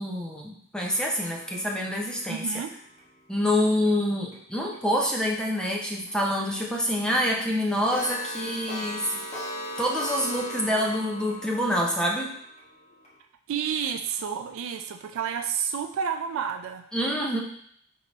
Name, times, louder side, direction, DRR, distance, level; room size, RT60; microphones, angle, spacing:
voice 1, 0.0-2.5 3.3-9.2 9.8-12.3 16.9-17.4, equal, 5° left, -1 dB, 0.5 m, -26 dB
Clock, 0.8-3.9 4.3-4.4 4.7-4.8 5.2-5.3 5.6-5.7 6.1-6.2 6.5-6.6 6.9-7.0 7.3-13.1, left 1 dB, 30° left, 1.0 m, -39 dB
voice 2, 2.3-2.7 13.5-16.8, right 7 dB, 60° right, 6 dB, 0.3 m, -30 dB
4.6 x 2.7 x 2.9 m, 0.67 s
head